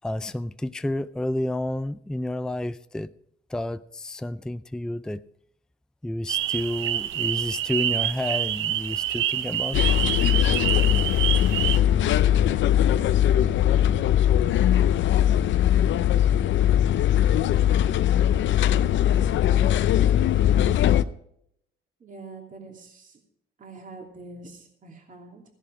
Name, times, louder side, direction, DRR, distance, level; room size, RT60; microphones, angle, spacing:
voice 1, 0.0-3.1 3.5-5.2 6.0-9.8, left 1 dB, 5° left, 0.4 m, -30 dB
sound 1, 6.3-11.8, right 12 dB, 80° right, 0.7 m, -27 dB
sound 2, 9.7-21.0, left 11 dB, 70° left, 0.6 m, -20 dB
voice 2, 22.0-23.2 23.6-25.4, right 3 dB, 40° right, 2.7 m, -44 dB
15.0 x 10.5 x 5.0 m
cardioid pair, 90°, 20 cm